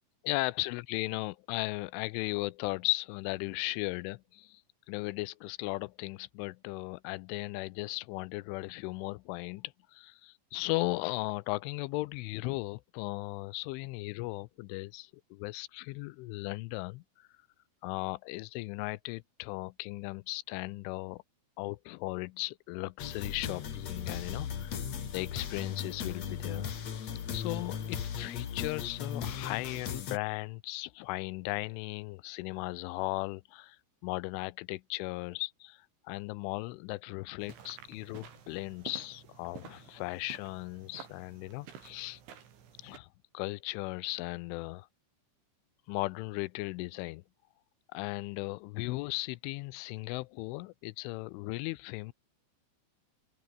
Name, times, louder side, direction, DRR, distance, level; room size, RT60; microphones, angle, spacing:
voice 1, 0.2-4.6 4.9-17.3 17.8-21.2 21.6-24.7 25.1-42.2 42.8-43.1 43.3-44.9 45.9-47.2 47.9-52.1, left 22 dB, 90° left, 3.1 m, -37 dB
sound 1, 23.0-30.2, left 8 dB, 45° left, 2.6 m, -37 dB
sound 2, 37.4-43.0, right 8 dB, 75° right, 6.1 m, -51 dB
open air
omnidirectional pair, 5.5 m